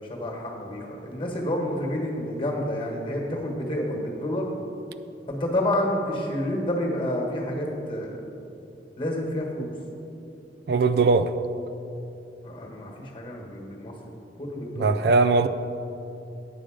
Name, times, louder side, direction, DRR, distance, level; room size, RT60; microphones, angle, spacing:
voice 1, 0.1-4.5 5.3-8.2 9.0-9.7 12.4-15.0, left 1 dB, 30° left, 1.4 m, -29 dB
voice 2, 10.7-11.3 14.8-15.5, right 4 dB, 65° right, 0.4 m, -20 dB
9.0 x 6.7 x 5.0 m
head